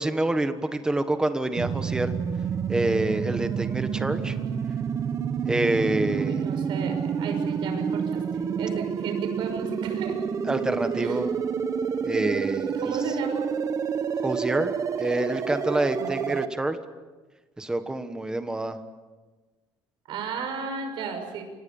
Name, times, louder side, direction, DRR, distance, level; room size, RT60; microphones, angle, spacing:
voice 1, 0.0-2.1 2.7-4.4 5.5-6.5 10.5-11.3 12.0-12.9 14.2-16.8 17.6-18.8, right 2 dB, 10° right, 9 dB, 1.4 m, -27 dB
sound 1, 1.6-16.5, right 7 dB, 35° right, 1.0 m, -29 dB
voice 2, 6.2-8.2 8.6-10.2 10.9-11.3 12.7-13.4 15.9-16.4 20.1-21.4, right 5 dB, 60° right, 5 dB, 6.0 m, -34 dB
29.0 x 26.0 x 5.5 m, 1.3 s
cardioid pair, 175°, 9 cm